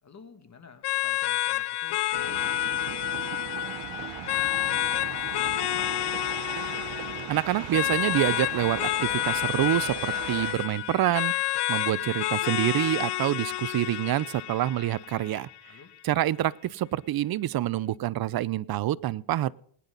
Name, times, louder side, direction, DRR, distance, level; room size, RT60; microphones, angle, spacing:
voice 1, 0.0-6.1 15.7-15.9, left 5 dB, 35° left, 8 dB, 2.3 m, -52 dB
sound 1, 0.8-15.8, left 15 dB, 55° left, 0.6 m, -29 dB
sound 2, 2.1-10.5, right 13 dB, 70° right, 1.0 m, -39 dB
voice 2, 7.3-11.3 11.7-15.5 16.0-19.5, right 13 dB, 50° right, 21 dB, 0.6 m, -27 dB
20.5 x 10.0 x 3.9 m, 0.64 s
cardioid pair, 100°, 48 cm